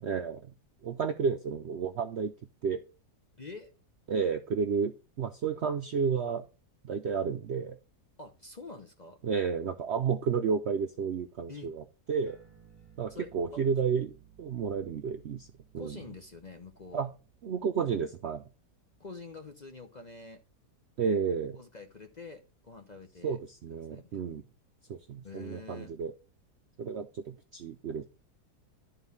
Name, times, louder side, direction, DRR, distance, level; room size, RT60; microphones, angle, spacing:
voice 1, 0.0-0.5 0.8-2.3 2.6-2.8 4.1-6.4 6.8-7.8 9.2-12.4 13.0-14.1 14.4-15.5 15.7-16.0 16.9-17.1 17.4-18.4 21.0-21.6 23.2-24.4 24.9-26.1 26.8-28.0, right 6 dB, 65° right, 0.7 m, -31 dB
voice 2, 3.4-3.7 8.2-9.2 11.5-11.7 13.1-13.8 15.8-17.1 19.0-20.4 21.6-23.4 23.9-24.3 25.2-25.9, left 3 dB, 35° left, 0.7 m, -47 dB
sound 1, 12.3-19.1, right 8 dB, 15° right, 4.3 m, -60 dB
11.5 x 4.0 x 5.3 m
omnidirectional pair, 1.7 m